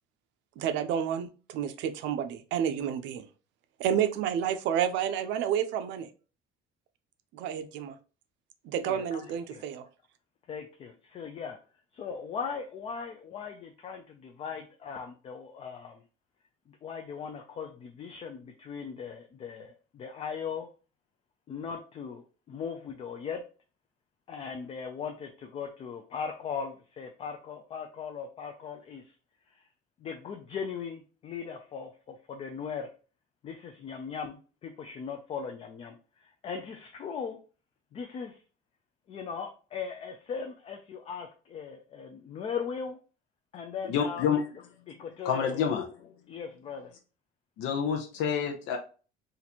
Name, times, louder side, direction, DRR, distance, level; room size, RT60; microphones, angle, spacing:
voice 1, 0.6-3.3 3.8-6.1 7.3-8.0 8.6-9.8, right 9 dB, 70° right, 10 dB, 0.5 m, -30 dB
voice 2, 8.8-9.6 10.5-11.6 11.9-16.0 16.7-20.7 21.5-23.4 24.3-29.1 29.5-29.7 30.0-32.9 33.4-37.4 37.9-38.4 39.1-43.0 43.5-44.4 44.9-45.7 46.3-46.9, left 6 dB, 30° left, 4 dB, 0.3 m, -39 dB
voice 3, 43.8-44.4 45.2-45.9 47.6-48.8, left 7 dB, 85° left, 2 dB, 0.7 m, -28 dB
2.9 x 2.6 x 4.1 m, 0.36 s
cardioid pair, 175°, 20 cm